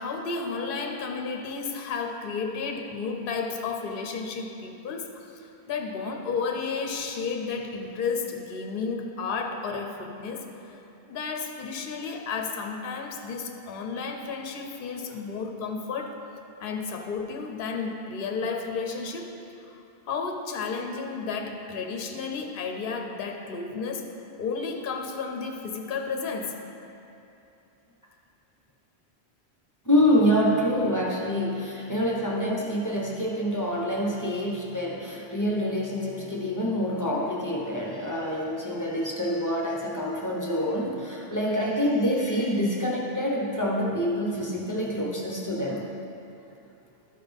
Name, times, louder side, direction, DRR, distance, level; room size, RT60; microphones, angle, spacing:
voice 1, 0.0-16.2 16.6-19.3 19.6-19.8 20.1-24.1 24.4-26.6, left 5 dB, 60° left, 3 dB, 0.8 m, -32 dB
voice 2, 29.8-45.9, equal, 20° left, -3 dB, 0.9 m, -26 dB
12.5 x 4.2 x 5.2 m, 2.8 s
omnidirectional pair, 1.1 m